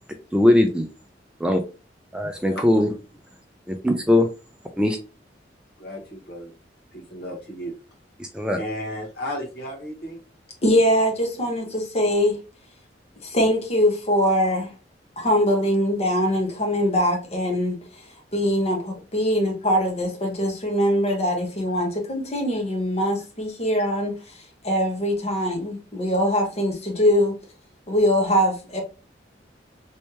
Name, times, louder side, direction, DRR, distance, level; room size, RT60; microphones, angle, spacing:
voice 1, 0.3-0.9 1.4-1.6 2.1-2.9 3.8-4.3 4.8-5.0 8.2-8.6, left 1 dB, 5° right, 0.3 m, -19 dB
voice 2, 5.8-6.5 6.9-7.7 8.5-10.2, equal, 60° left, 1.4 m, -34 dB
voice 3, 10.6-12.4 13.2-14.7 15.2-17.7 18.3-24.2 24.6-27.3 27.9-28.8, equal, 35° left, 1.0 m, -22 dB
3.2 x 3.1 x 3.0 m
head